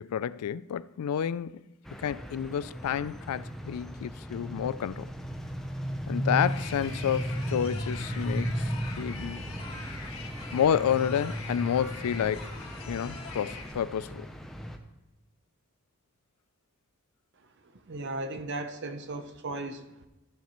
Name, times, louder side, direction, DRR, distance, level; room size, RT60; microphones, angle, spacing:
voice 1, 0.0-1.6 2.0-5.1 6.1-9.4 10.5-12.6 12.9-14.3, left 8 dB, 90° left, 0.3 m, -30 dB
sound 1, 1.9-14.8, equal, ahead, 0.7 m, -36 dB
sound 2, 6.4-13.7, left 4 dB, 65° left, 1.9 m, -44 dB
voice 2, 17.9-20.1, right 2 dB, 50° right, 0.8 m, -36 dB
14.0 x 7.2 x 3.1 m
head